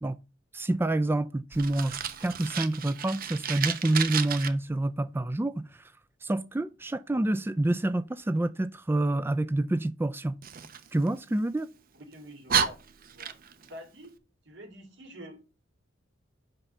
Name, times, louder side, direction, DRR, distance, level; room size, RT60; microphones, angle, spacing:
voice 1, 0.5-5.9 6.2-10.4 10.9-11.7, right 1 dB, 10° right, 0.3 m, -28 dB
Fire, 1.5-4.5 10.4-11.6 12.1-12.2 12.5-13.7, right 8 dB, 45° right, 0.7 m, -32 dB
voice 2, 11.9-13.4 13.6-14.2 14.4-15.4, equal, 65° right, 2.6 m, -47 dB
5.7 x 5.4 x 6.7 m
head